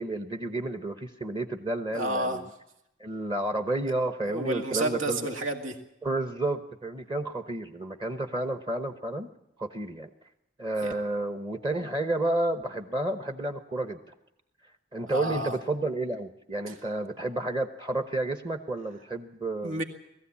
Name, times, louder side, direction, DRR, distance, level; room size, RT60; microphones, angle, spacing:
voice 1, 0.0-2.5 3.0-5.3 6.0-9.3 9.6-10.1 10.6-14.0 14.9-19.8, right 2 dB, 25° right, 6 dB, 1.0 m, -31 dB
voice 2, 1.9-2.4 4.2-5.8 10.8-10.9 15.1-15.6 16.7-16.8 19.6-19.8, right 1 dB, 85° right, 4 dB, 2.1 m, -30 dB
20.5 x 15.0 x 8.4 m, 0.86 s
head